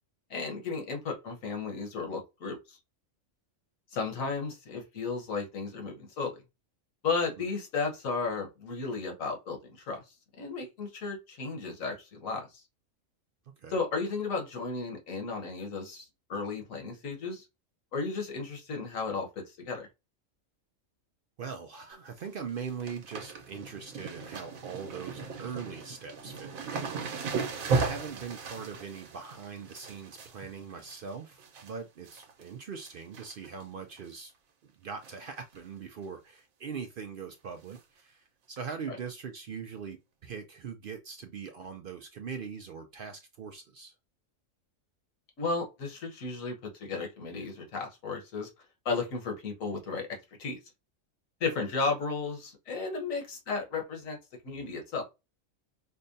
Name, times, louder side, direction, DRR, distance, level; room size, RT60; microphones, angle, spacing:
voice 1, 0.3-2.8 3.9-6.4 7.0-10.0 10.4-12.6 13.7-17.5 17.9-19.3 19.6-19.9 38.9-39.0 45.4-48.5 48.8-50.1 50.4-50.6 51.4-54.2 54.4-55.0, left 4 dB, 75° left, 1.5 m, -34 dB
voice 2, 21.4-27.4 27.7-34.3 34.6-43.9, right 6 dB, 65° right, 0.5 m, -41 dB
sound 1, 21.9-22.2 22.5-31.7 32.1-32.5 32.8-33.6 34.0-34.1 35.0-35.3 35.6-35.7 36.0-36.1 37.7-37.8 38.6-38.7, right 4 dB, 80° right, 1.2 m, -36 dB
5.3 x 2.2 x 2.6 m
omnidirectional pair, 1.4 m